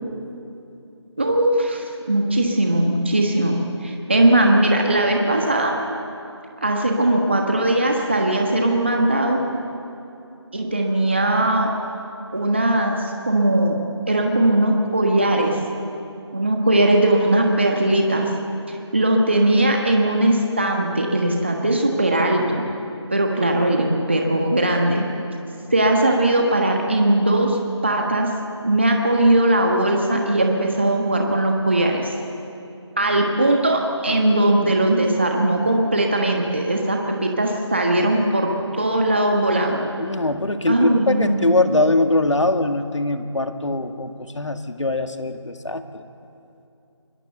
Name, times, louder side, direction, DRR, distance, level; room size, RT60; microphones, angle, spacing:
voice 1, 1.2-5.7 6.6-9.4 10.5-11.7 12.3-13.8 14.1-15.6 16.3-18.3 18.7-22.6 23.1-25.1 25.7-28.3 28.6-32.1 33.0-39.9 40.7-41.5, right 1 dB, 25° right, 1 dB, 1.3 m, -19 dB
voice 2, 40.0-46.0, left 2 dB, 80° left, 7 dB, 2.0 m, -22 dB
25.0 x 22.0 x 8.0 m, 2.7 s
figure-of-eight pair, 180°, 15 cm